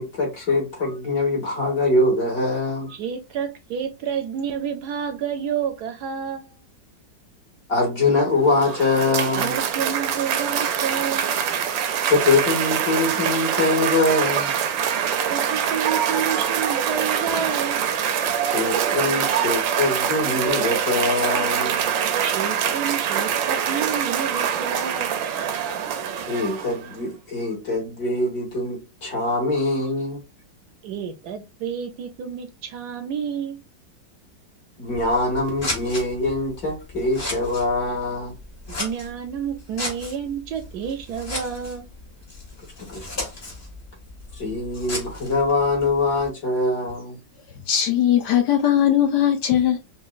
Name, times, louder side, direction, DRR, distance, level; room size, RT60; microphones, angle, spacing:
voice 1, 0.0-2.9 7.7-9.5 12.1-14.5 18.5-21.9 26.3-30.2 34.8-38.3 42.8-43.1 44.4-47.2, left 2 dB, 50° left, 2.2 m, -23 dB
voice 2, 2.9-6.6 9.3-11.3 15.3-17.8 22.2-25.1 30.8-33.6 38.8-41.9, right 7 dB, 70° right, 1.0 m, -29 dB
Cheering / Applause, 8.3-26.9, right 8 dB, 85° right, 1.3 m, -24 dB
Scissors, 34.8-46.3, left 2 dB, 30° left, 2.1 m, -36 dB
voice 3, 47.7-49.8, left 10 dB, 70° left, 1.2 m, -19 dB
5.6 x 2.5 x 2.3 m
omnidirectional pair, 2.0 m